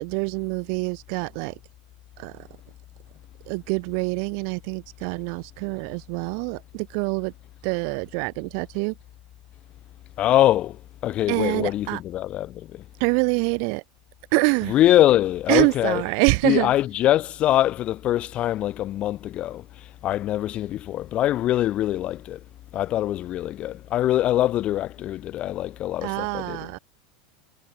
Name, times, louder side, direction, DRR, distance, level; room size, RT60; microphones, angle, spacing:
voice 1, 0.0-1.5 2.2-2.4 3.5-7.3 7.6-8.9 11.3-12.0 13.0-13.8 14.3-14.7 15.5-16.7 26.0-26.8, right 40 dB or more, 55° right, 0.5 m, -25 dB
voice 2, 10.2-12.8 14.7-16.0 16.4-22.4 22.7-26.8, left 13 dB, 35° left, 0.7 m, -23 dB
supercardioid pair, 150°, 4 cm